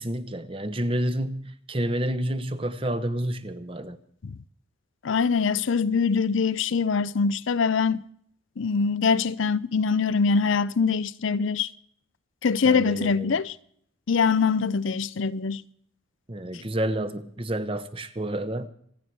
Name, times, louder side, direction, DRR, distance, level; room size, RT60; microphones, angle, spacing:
voice 1, 0.0-4.0 12.6-13.4 16.3-18.7, right 1 dB, 25° right, 0.9 m, -29 dB
voice 2, 5.0-8.0 8.6-11.7 12.4-13.5 14.1-15.6, left 5 dB, 65° left, 0.5 m, -23 dB
27.0 x 9.7 x 4.6 m
head